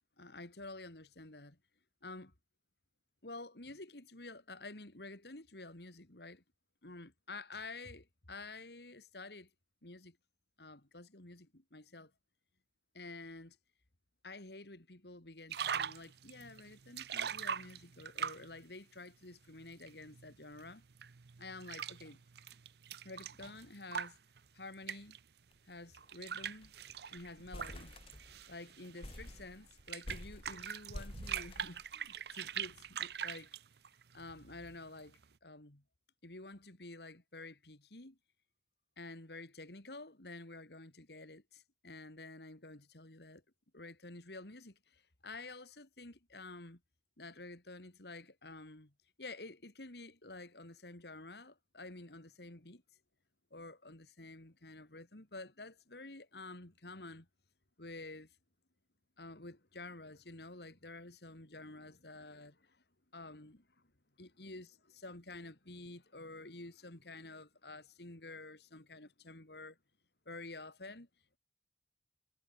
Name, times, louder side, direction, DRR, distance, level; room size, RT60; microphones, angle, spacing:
voice 1, 0.2-1.6 2.0-2.3 3.2-6.4 6.8-9.5 9.8-10.2 10.6-12.1 12.9-13.6 14.2-20.8 21.4-22.2 23.0-24.2 24.5-25.2 25.6-26.7 27.1-28.0 28.5-33.5 34.1-35.8 36.2-38.2 39.0-43.4 43.7-46.8 47.2-48.9 49.2-52.8 53.5-57.3 57.8-58.4 59.2-62.8 63.1-63.6 64.2-69.8 70.3-71.1, left 2 dB, 65° left, 2.6 m, -50 dB
sound 1, 15.5-18.6 19.4-25.2 25.9-35.2, right 8 dB, 60° right, 0.6 m, -43 dB
sound 2, 25.5-25.7 26.0-26.1 26.4-26.8 27.2-28.6 29.0-32.3, left 1 dB, 30° left, 1.6 m, -49 dB
head